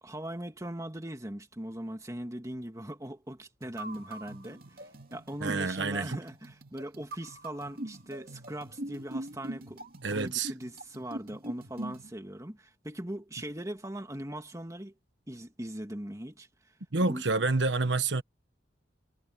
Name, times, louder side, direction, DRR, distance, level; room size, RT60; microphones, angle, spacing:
voice 1, 0.0-14.9 15.3-16.5 17.0-17.2, right 1 dB, 15° right, 2.1 m, -40 dB
sound 1, 3.6-12.1, right 1 dB, 50° right, 2.8 m, -43 dB
voice 2, 5.4-6.2 10.0-10.5 16.9-18.2, right 3 dB, 75° right, 1.2 m, -28 dB
head